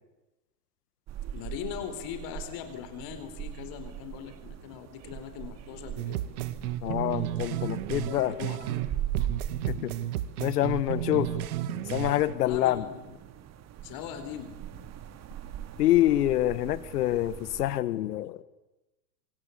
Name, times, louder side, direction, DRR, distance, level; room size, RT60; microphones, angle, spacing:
sound 1, 1.1-17.8, right 10 dB, 35° right, 2.2 m, -41 dB
voice 1, 1.3-6.2 8.2-8.8 12.4-13.2 13.8-14.6, left 9 dB, 45° left, 8 dB, 4.3 m, -40 dB
sound 2, 6.0-8.9 9.1-12.3, right 12 dB, 65° right, 2.1 m, -33 dB
voice 2, 6.8-8.4 9.7-10.1 10.4-11.3 11.9-12.9 15.8-18.4, left 14 dB, 70° left, 15 dB, 1.8 m, -26 dB
26.5 x 25.5 x 8.5 m, 1.0 s
hypercardioid pair, 110°, 48 cm